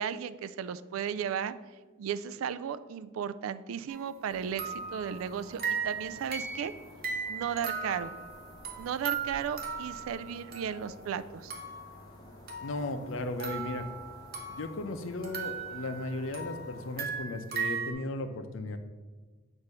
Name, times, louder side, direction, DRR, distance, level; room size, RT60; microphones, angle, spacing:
voice 1, 0.0-1.5 2.0-6.7 7.3-8.1 8.8-11.5, right 8 dB, 85° right, 15 dB, 0.3 m, -35 dB
sound 1, 3.9-4.1 4.6-11.1 11.5-12.0 12.5-14.8 15.2-17.9, right 6 dB, 50° right, 0.9 m, -37 dB
sound 2, 4.3-17.2, left 1 dB, 20° left, 0.8 m, -52 dB
voice 2, 12.6-13.9 14.5-18.8, left 2 dB, 70° left, 8 dB, 0.6 m, -36 dB
7.9 x 2.7 x 5.3 m, 1.4 s
head